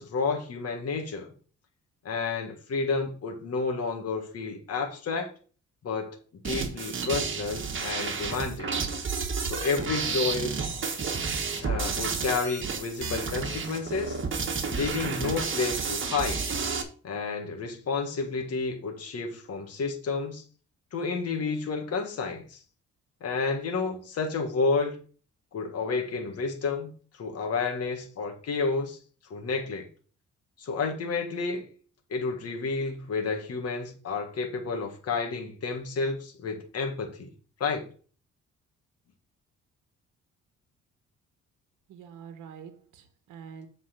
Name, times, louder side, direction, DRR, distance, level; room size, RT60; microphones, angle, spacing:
voice 1, 0.0-1.3 2.0-5.3 5.8-6.2 6.4-8.7 9.4-10.7 11.6-14.2 14.7-16.4 17.0-20.4 20.9-22.6 23.2-25.0 25.5-26.9 27.2-29.0 29.3-29.8 30.6-31.7 32.1-37.3 37.6-37.8, left 4 dB, 55° left, 3 dB, 1.7 m, -30 dB
sound 1, 6.4-16.8, right 5 dB, 40° right, 1.4 m, -31 dB
voice 2, 41.9-43.7, right 7 dB, 85° right, 8 dB, 1.1 m, -46 dB
7.6 x 4.2 x 5.8 m, 0.41 s
cardioid pair, 90°, 30 cm